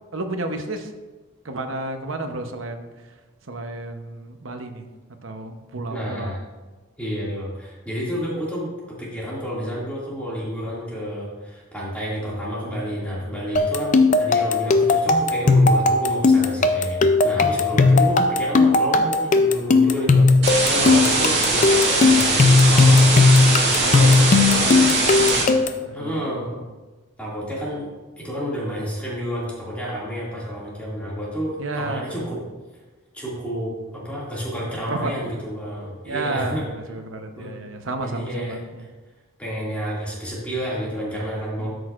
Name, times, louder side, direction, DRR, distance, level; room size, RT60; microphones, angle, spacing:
voice 1, 0.1-0.9 1.4-2.9 3.5-4.8 5.2-6.3 13.0-13.2 17.7-18.1 20.8-21.5 23.9-26.3 31.6-32.4 34.9-35.3 36.1-38.8 41.6-41.7, right 2 dB, 70° right, 5 dB, 0.9 m, -31 dB
voice 2, 5.9-6.4 7.0-20.3 20.7-24.3 25.9-26.6 27.2-27.9 28.2-32.4 33.1-36.6 37.4-37.5 38.0-38.9 39.4-41.7, equal, 5° left, -7 dB, 2.2 m, -30 dB
sound 1, 13.6-25.9, left 3 dB, 35° left, 0.4 m, -17 dB
sound 2, 20.4-25.4, right 3 dB, 55° right, 2.1 m, -21 dB
12.5 x 6.3 x 2.5 m, 1.2 s
head